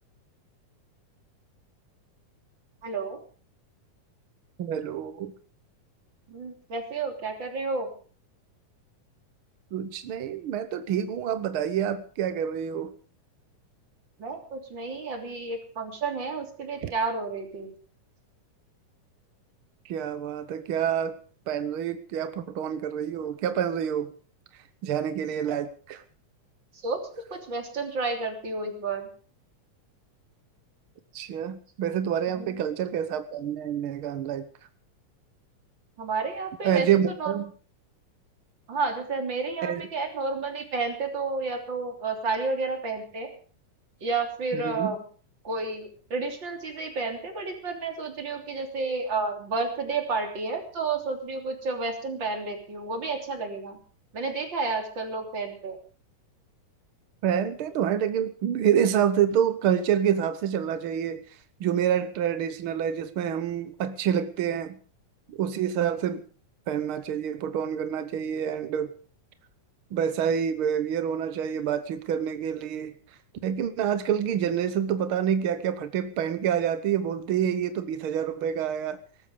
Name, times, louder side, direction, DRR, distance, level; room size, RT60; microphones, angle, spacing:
voice 1, 2.8-3.2 6.3-7.9 14.2-17.7 25.5-25.6 26.8-27.0 27.3-29.1 32.3-32.7 36.0-36.9 37.2-37.3 38.7-43.3 44.0-45.0 45.4-53.8 54.1-55.8, right 4 dB, 35° right, 4 dB, 3.7 m, -31 dB
voice 2, 4.6-5.3 9.7-12.9 16.8-16.9 19.8-21.2 21.5-24.1 24.5-26.0 31.1-34.5 36.6-37.5 39.6-39.8 44.5-44.9 57.2-64.8 65.3-66.2 66.7-68.9 69.9-73.0 73.4-79.0, right 9 dB, 70° right, 11 dB, 1.2 m, -27 dB
18.5 x 14.5 x 5.1 m, 0.41 s
omnidirectional pair, 3.8 m